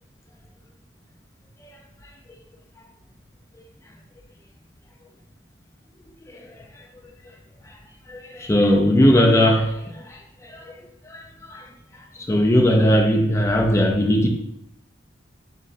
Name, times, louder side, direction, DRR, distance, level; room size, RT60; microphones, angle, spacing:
voice 1, 6.2-6.6 7.7-7.8 8.1-11.2 11.5-11.7 12.1-14.3, equal, 15° left, 1 dB, 0.4 m, -19 dB
5.1 x 2.0 x 2.6 m, 0.79 s
head